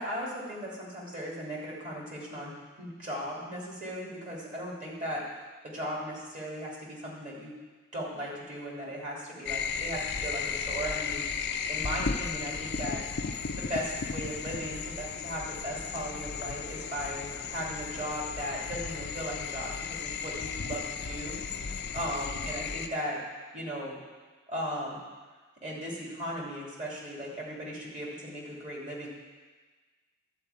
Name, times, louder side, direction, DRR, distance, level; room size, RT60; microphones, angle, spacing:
voice 1, 0.0-5.2 5.6-7.5 7.9-13.0 13.5-20.8 21.1-21.4 21.9-23.2 23.5-24.0 24.5-25.0 25.6-29.1, equal, 35° right, -4 dB, 2.9 m, -37 dB
sound 1, 9.5-22.9, left 6 dB, 55° left, 0.5 m, -35 dB
12.0 x 4.5 x 8.4 m, 1.4 s
head